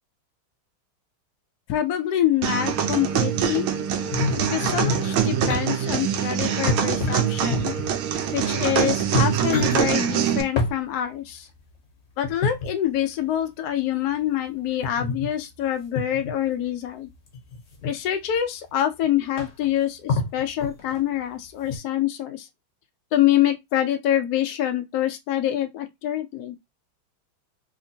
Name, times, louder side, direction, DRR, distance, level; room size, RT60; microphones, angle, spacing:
voice 1, 1.7-3.7 4.4-7.7 8.3-11.5 12.2-17.1 17.8-22.5 23.1-26.5, left 11 dB, 85° left, 0.8 m, -25 dB
sound 1, 2.4-10.4, right 8 dB, 85° right, 1.5 m, -24 dB
sound 2, 4.1-5.6 6.7-7.9 8.6-8.7 9.0-9.8 10.6-10.8 12.2-12.7 14.8-15.3 16.0-16.3 17.3-17.9 18.7-18.8 19.0-19.1 19.4-19.7 20.1-21.0 21.6-21.8, left 3 dB, 50° left, 0.8 m, -27 dB
3.5 x 2.8 x 2.7 m
omnidirectional pair, 2.2 m